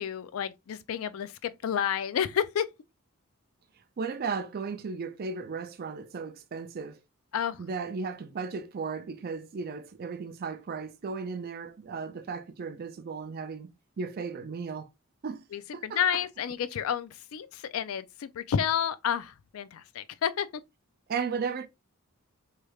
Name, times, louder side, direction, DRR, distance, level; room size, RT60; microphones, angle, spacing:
voice 1, 0.0-2.7 7.3-7.6 15.5-20.5, left 8 dB, 70° left, 0.4 m, -30 dB
voice 2, 4.0-7.0 7.6-13.7 14.0-14.9 15.2-15.4 15.7-16.2 21.1-21.7, right 5 dB, 45° right, 0.4 m, -35 dB
3.2 x 3.2 x 2.3 m
head